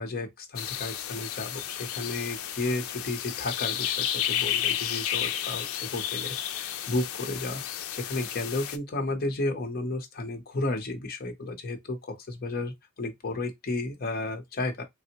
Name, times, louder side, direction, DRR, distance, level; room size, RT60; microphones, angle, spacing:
voice 1, 0.0-14.8, left 2 dB, 45° left, 0.7 m, -33 dB
sound 1, 0.5-8.8, left 11 dB, 85° left, 0.4 m, -32 dB
3.4 x 2.0 x 2.8 m
head